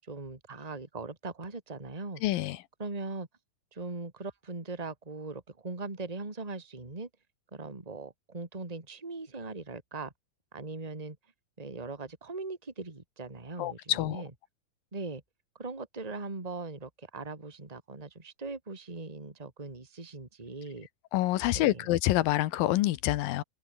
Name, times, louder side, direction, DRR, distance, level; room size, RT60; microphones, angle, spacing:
voice 1, 0.1-2.2 2.8-3.3 3.7-7.1 7.5-10.1 10.5-11.2 11.6-14.3 14.9-15.2 15.6-20.9 21.5-21.9, right 3 dB, 10° right, 2.8 m, -40 dB
voice 2, 2.2-2.6 13.6-14.2 21.1-23.4, left 15 dB, 80° left, 2.7 m, -27 dB
open air
omnidirectional pair, 4.1 m